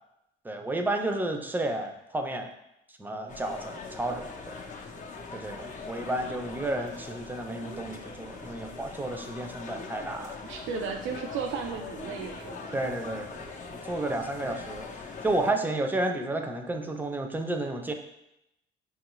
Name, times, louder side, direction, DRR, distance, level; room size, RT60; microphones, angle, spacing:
voice 1, 0.4-2.5 3.0-4.5 5.3-10.4 12.7-14.9 15.2-17.9, right 2 dB, 10° right, 5 dB, 0.4 m, -31 dB
sound 1, 3.3-15.5, left 4 dB, 40° left, 0.6 m, -42 dB
voice 2, 10.4-12.6, right 5 dB, 85° right, 3 dB, 0.4 m, -34 dB
5.7 x 2.4 x 3.0 m, 0.86 s
cardioid pair, 90°, 20 cm